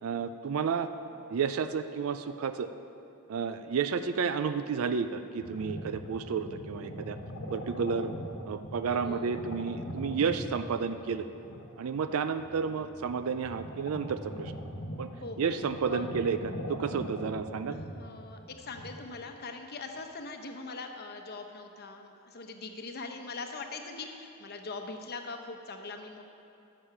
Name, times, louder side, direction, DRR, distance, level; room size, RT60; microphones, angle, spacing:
voice 1, 0.0-0.9 1.3-2.7 3.3-7.2 7.5-8.1 8.5-11.3 11.8-14.5 15.0-17.8, right 6 dB, 75° right, 10 dB, 0.4 m, -31 dB
sound 1, 5.4-18.9, equal, 90° left, 1.3 m, -42 dB
voice 2, 9.0-9.4 15.2-15.5 15.9-16.1 17.7-26.2, left 3 dB, 50° left, 4 dB, 0.9 m, -42 dB
11.5 x 7.2 x 5.8 m, 2.7 s
head